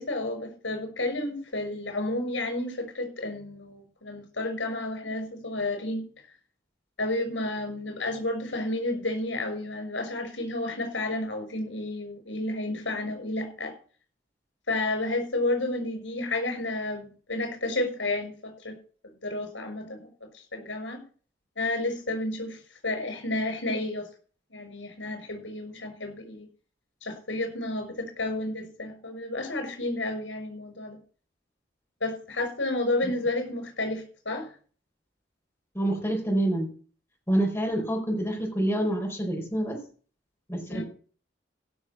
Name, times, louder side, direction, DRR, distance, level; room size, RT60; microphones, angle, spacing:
voice 1, 0.0-6.1 7.0-13.7 14.7-18.8 19.2-21.0 21.6-24.1 24.5-26.5 27.0-31.0 32.0-34.5 40.7-40.8, left 2 dB, 85° left, 6 dB, 6.6 m, -31 dB
voice 2, 35.7-36.7 37.3-39.8 40.5-40.8, right 1 dB, 15° left, -1 dB, 4.8 m, -27 dB
16.5 x 6.4 x 6.2 m, 0.41 s
head